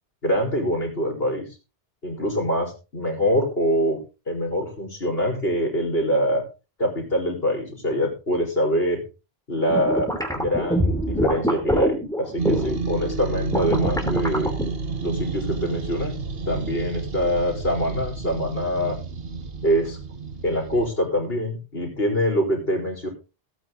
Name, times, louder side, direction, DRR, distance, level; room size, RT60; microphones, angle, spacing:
voice 1, 0.2-1.5 2.0-4.0 4.3-6.4 6.8-9.0 9.5-14.5 15.0-16.1 16.5-19.0 19.6-20.0 20.4-23.1, equal, 65° left, 0 dB, 4.5 m, -24 dB
sound 1, 9.7-12.8 13.4-14.7, equal, 5° left, 2.9 m, -24 dB
sound 2, 12.4-20.9, right 4 dB, 65° right, 1.6 m, -30 dB
17.0 x 9.1 x 3.9 m, 0.31 s
omnidirectional pair, 1.1 m